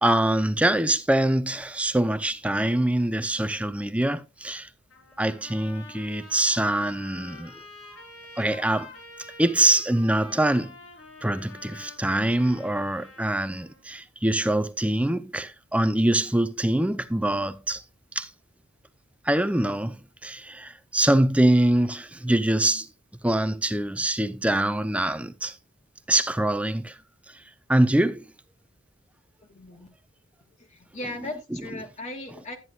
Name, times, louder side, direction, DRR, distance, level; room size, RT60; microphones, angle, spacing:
voice 1, 0.0-4.7 5.2-7.6 8.4-8.9 9.4-10.8 11.2-17.8 18.1-18.3 19.2-22.9 23.2-25.6 26.1-27.0 27.3-27.4 27.7-28.3, right 1 dB, 5° right, 0.5 m, -24 dB
Trumpet, 4.9-13.8, left 3 dB, 85° left, 4.8 m, -47 dB
voice 2, 29.4-29.9 30.6-32.6, left 2 dB, 35° left, 1.2 m, -37 dB
12.5 x 9.4 x 2.4 m
head